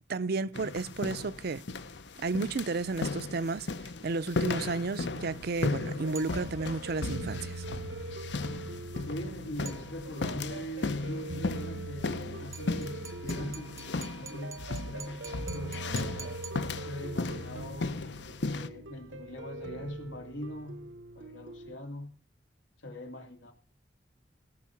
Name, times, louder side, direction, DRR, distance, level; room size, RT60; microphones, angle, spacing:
voice 1, 0.1-1.6 2.2-3.7 4.0-7.7, right 3 dB, 60° right, 0.6 m, -32 dB
Climbing Stairs in Boots, 0.5-18.7, left 3 dB, 70° left, 0.8 m, -36 dB
sound 1, 5.0-21.7, right 2 dB, 85° right, 1.1 m, -43 dB
sound 2, 6.1-6.9 9.6-10.4 12.5-17.2, right 6 dB, 15° right, 0.7 m, -48 dB
voice 2, 9.1-13.8 14.2-16.3 16.9-18.0 18.4-22.2 22.8-23.5, left 1 dB, 90° left, 2.7 m, -41 dB
17.5 x 6.2 x 5.9 m
head